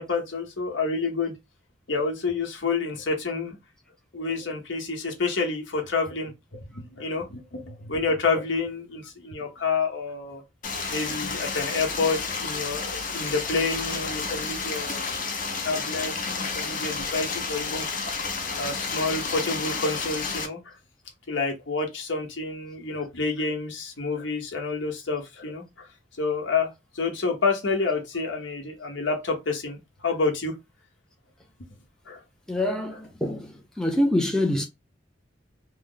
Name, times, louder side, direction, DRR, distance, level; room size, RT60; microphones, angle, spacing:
voice 1, 0.0-1.4 1.9-3.6 4.1-10.4 10.9-15.1 15.6-16.1 16.4-17.9 18.6-20.7 21.3-25.9 26.2-30.5 32.1-32.2, left 4 dB, 80° left, 1.0 m, -28 dB
Stream, 10.6-20.5, left 4 dB, 45° left, 0.7 m, -31 dB
voice 2, 32.5-34.7, left 1 dB, 5° left, 0.5 m, -25 dB
3.1 x 2.0 x 3.7 m
head